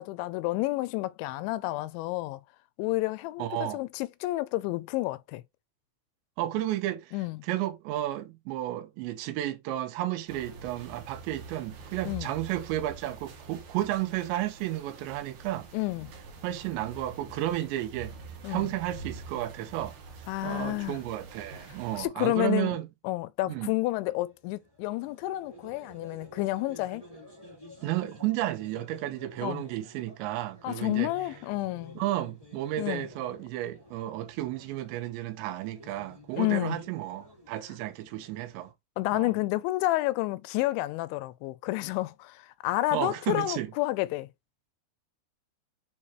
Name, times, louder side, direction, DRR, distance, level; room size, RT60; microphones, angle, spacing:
voice 1, 0.0-2.4 2.8-5.4 7.1-7.4 12.1-12.3 15.7-16.1 18.4-18.7 20.3-21.0 21.9-22.8 23.0-27.0 29.4-29.6 30.6-32.0 32.8-33.1 36.4-36.8 39.0-44.3, left 18 dB, 85° left, 2.9 m, -30 dB
voice 2, 3.4-3.8 6.4-7.2 7.4-15.7 16.4-18.1 18.5-19.9 20.4-22.9 23.5-23.7 27.8-31.1 32.0-38.7 39.1-39.3 42.9-43.7, right 14 dB, 80° right, 2.9 m, -32 dB
sound 1, 10.3-22.1, right 4 dB, 60° right, 3.4 m, -46 dB
sound 2, 23.9-38.7, left 1 dB, 10° right, 1.6 m, -52 dB
8.8 x 4.2 x 3.0 m
omnidirectional pair, 5.3 m